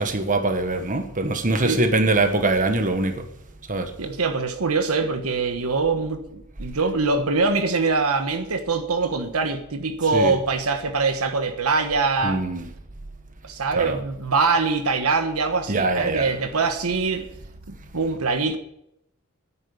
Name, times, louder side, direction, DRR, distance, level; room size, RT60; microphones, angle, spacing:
voice 1, 0.0-3.3 3.7-3.9 10.1-10.4 12.2-12.7 13.7-14.0 15.7-16.3, right 2 dB, 35° right, 1.4 m, -23 dB
voice 2, 4.0-12.4 13.4-17.2 17.9-18.6, right 4 dB, 80° right, 1.3 m, -23 dB
10.5 x 9.0 x 8.3 m
head